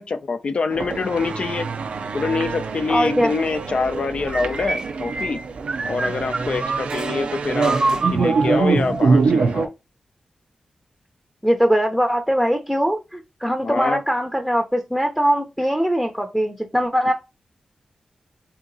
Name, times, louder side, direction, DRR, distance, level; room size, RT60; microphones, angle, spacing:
voice 1, 0.0-1.7 2.1-5.4 5.8-9.7 13.6-14.0, left 4 dB, 60° left, 0.6 m, -25 dB
sound 1, 0.7-9.7, right 4 dB, 80° right, 0.5 m, -24 dB
voice 2, 2.9-3.3 11.4-17.1, equal, ahead, 0.7 m, -21 dB
sound 2, 4.3-7.1 7.6-9.4, right 3 dB, 35° right, 0.7 m, -27 dB
3.6 x 2.9 x 3.9 m
cardioid pair, 75°, 2 cm